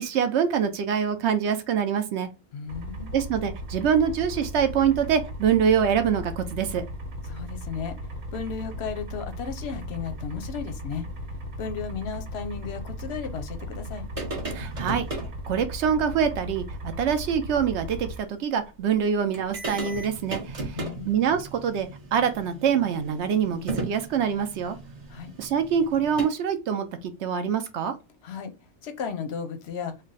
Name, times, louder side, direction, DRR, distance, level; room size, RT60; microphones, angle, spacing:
voice 1, 0.0-2.3 3.1-6.8 14.5-15.0 15.5-16.6 17.0-24.8 25.4-28.0, right 7 dB, 65° right, 0.7 m, -25 dB
voice 2, 2.5-3.1 7.3-8.0 8.3-11.1 11.6-14.0 20.7-21.2 25.1-25.3 28.2-28.5 28.8-29.9, left 6 dB, 60° left, 0.8 m, -34 dB
sound 1, 2.7-18.2, equal, 80° right, 1.3 m, -37 dB
sound 2, 14.2-15.3 16.9-17.0 17.3-17.4 19.0-19.1 19.3-26.2, right 3 dB, 30° right, 0.7 m, -36 dB
3.2 x 2.2 x 3.9 m
omnidirectional pair, 1.5 m